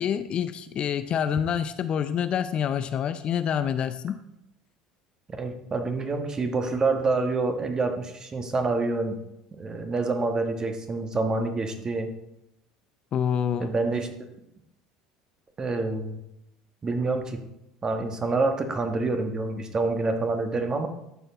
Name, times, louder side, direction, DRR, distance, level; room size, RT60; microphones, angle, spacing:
voice 1, 0.0-4.2 13.1-13.7, left 8 dB, 45° left, 11 dB, 0.4 m, -27 dB
voice 2, 5.3-9.2 9.6-12.1 13.6-14.1 15.6-16.2 16.8-17.4 17.8-20.9, right 3 dB, 25° right, 6 dB, 1.3 m, -27 dB
12.5 x 4.5 x 3.9 m, 0.84 s
hypercardioid pair, 70°, 2 cm